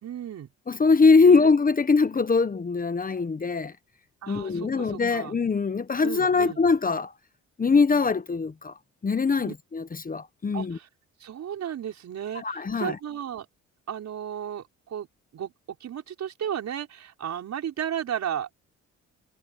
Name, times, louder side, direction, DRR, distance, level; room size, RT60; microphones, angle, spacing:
voice 1, 0.0-0.5 1.2-1.5 4.2-5.3 6.0-6.6 9.4-9.5 10.5-10.9 11.2-13.5 13.9-15.1 15.3-15.5 15.8-18.5, right 9 dB, 65° right, 5.7 m, -34 dB
voice 2, 0.7-3.7 4.3-7.1 7.6-8.7 9.0-10.8 12.4-13.0, left 4 dB, 30° left, 1.3 m, -22 dB
cardioid pair, 90°, 30 cm